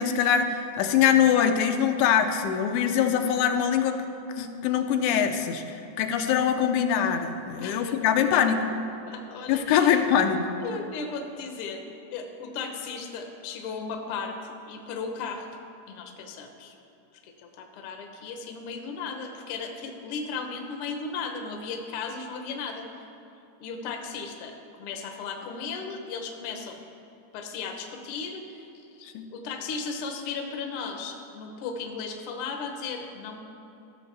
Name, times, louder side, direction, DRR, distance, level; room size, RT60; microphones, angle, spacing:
voice 1, 0.0-4.0 4.3-8.6 9.5-10.5 29.0-29.3, left 8 dB, 85° left, 6 dB, 2.1 m, -23 dB
voice 2, 7.6-8.5 9.1-10.0 10.6-11.8 12.1-15.6 15.9-16.7 17.2-23.1 23.6-24.5 24.8-26.8 27.3-33.4, left 5 dB, 70° left, 4 dB, 1.4 m, -36 dB
15.0 x 6.5 x 3.3 m, 2.9 s
omnidirectional pair, 3.5 m